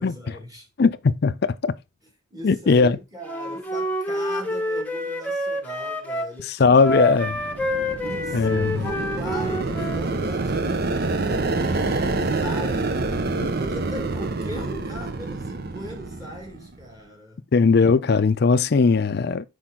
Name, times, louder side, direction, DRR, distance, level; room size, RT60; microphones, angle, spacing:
voice 1, 0.0-0.7 2.3-7.0 8.0-17.5, equal, 20° right, 2.0 m, -39 dB
voice 2, 0.8-1.7 2.4-3.0 6.5-7.4 8.3-8.9 17.5-19.4, left 4 dB, 60° left, 0.5 m, -19 dB
Wind instrument woodwind instrument, 3.2-6.3 6.8-10.0, equal, 10° left, 0.9 m, -28 dB
sound 1, 7.1-16.8, right 3 dB, 55° right, 0.7 m, -27 dB
6.1 x 5.0 x 3.7 m
head